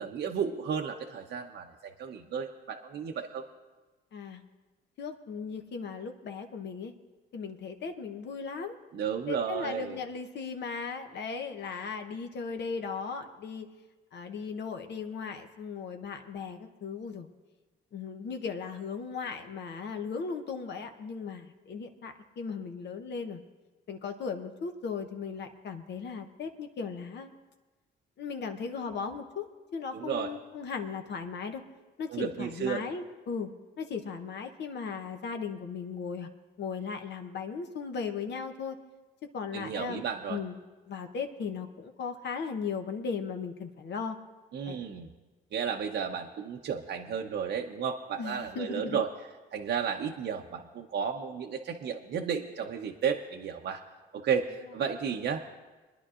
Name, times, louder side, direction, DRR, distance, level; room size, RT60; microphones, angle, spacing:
voice 1, 0.0-3.4 8.9-10.0 29.9-30.3 32.1-32.8 39.5-40.4 44.5-45.1 45.5-49.1 49.5-53.8 54.1-55.6, right 7 dB, 60° right, 2 dB, 0.8 m, -33 dB
voice 2, 5.0-6.9 7.3-8.8 9.3-13.7 14.1-17.3 17.9-23.4 23.9-27.3 28.2-31.6 32.0-33.5 33.8-36.3 36.6-38.8 39.3-40.0 40.3-40.6 40.9-44.2 44.7-44.8 48.2-49.0, left 5 dB, 60° left, 5 dB, 0.9 m, -37 dB
27.0 x 10.5 x 2.5 m, 1.2 s
cardioid pair, 90°, 20 cm